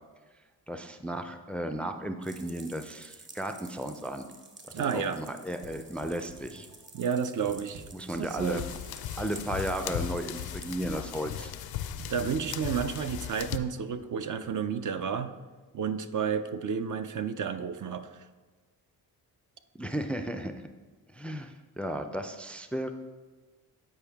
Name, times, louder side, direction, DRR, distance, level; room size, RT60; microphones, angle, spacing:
voice 1, 0.7-4.3 4.7-6.7 7.9-8.6 9.2-11.5 19.8-20.6 21.1-22.9, right 1 dB, 5° left, 7 dB, 0.4 m, -34 dB
sound 1, 2.2-10.8, right 3 dB, 30° right, 0.9 m, -51 dB
voice 2, 4.7-5.2 6.9-7.8 8.2-8.7 12.1-15.3 15.7-18.2, right 7 dB, 50° right, 9 dB, 0.5 m, -31 dB
sound 2, 5.6-14.1, right 3 dB, 70° right, 0.9 m, -52 dB
sound 3, 8.4-13.6, left 10 dB, 70° left, 0.5 m, -37 dB
8.7 x 4.6 x 3.5 m, 1.3 s
cardioid pair, 70°, 38 cm